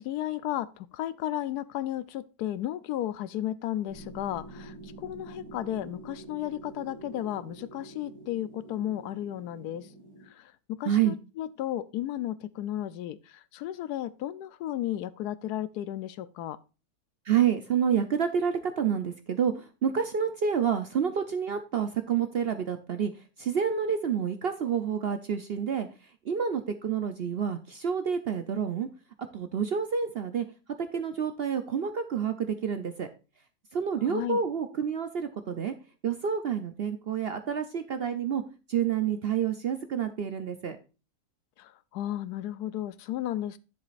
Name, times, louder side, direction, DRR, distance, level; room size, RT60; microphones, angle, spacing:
voice 1, 0.0-9.9 10.3-10.5 10.8-16.6 34.0-34.4 41.6-43.6, left 12 dB, 85° left, 1.2 m, -34 dB
sound 1, 3.9-10.3, right 3 dB, 80° right, 2.9 m, -47 dB
voice 2, 17.3-23.1 23.4-25.9 26.3-28.9 29.3-30.5 30.9-33.1 33.7-35.7 36.0-38.4 38.7-40.8, right 7 dB, 55° right, 0.7 m, -28 dB
10.5 x 7.2 x 2.5 m
omnidirectional pair, 1.6 m